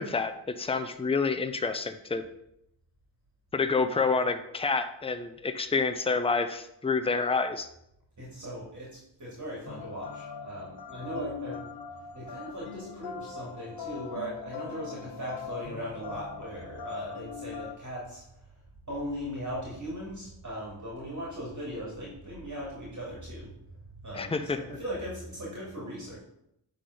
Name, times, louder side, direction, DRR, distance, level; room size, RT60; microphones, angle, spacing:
voice 1, 0.0-2.2 3.5-7.7 24.1-24.6, left 4 dB, 10° left, 8 dB, 0.5 m, -28 dB
voice 2, 8.2-11.6 12.1-18.5 18.9-23.5 23.9-26.2, equal, 35° right, -5 dB, 2.6 m, -38 dB
sound 1, 9.6-17.8, left 6 dB, 55° left, 0.8 m, -41 dB
9.9 x 3.9 x 5.0 m, 0.78 s
wide cardioid pair, 100°, 48 cm